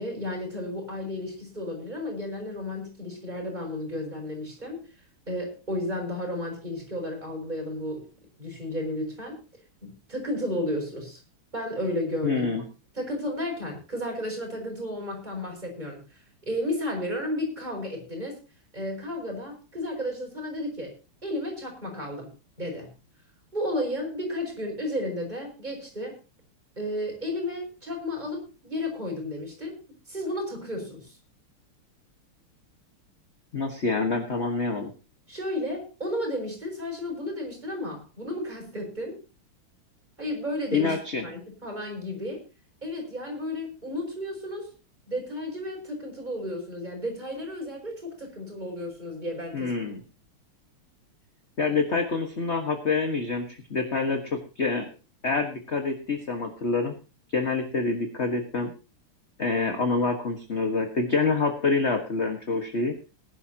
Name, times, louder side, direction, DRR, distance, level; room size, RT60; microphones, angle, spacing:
voice 1, 0.0-4.8 5.3-8.1 8.4-9.4 9.8-11.2 11.5-12.5 12.9-16.0 16.4-18.4 18.7-20.9 21.2-22.3 22.6-22.9 23.5-26.2 26.8-29.8 30.1-31.2 35.3-39.2 40.2-40.9 41.2-42.4 42.8-44.7 45.1-49.7, left 1 dB, 20° right, 0 dB, 6.5 m, -33 dB
voice 2, 12.2-12.6 33.5-34.9 40.7-41.2 49.5-50.0 51.6-54.8 55.2-56.9 57.3-58.7 59.4-62.9, left 4 dB, 35° left, 5 dB, 1.6 m, -26 dB
20.5 x 11.5 x 2.9 m, 0.32 s
omnidirectional pair, 2.4 m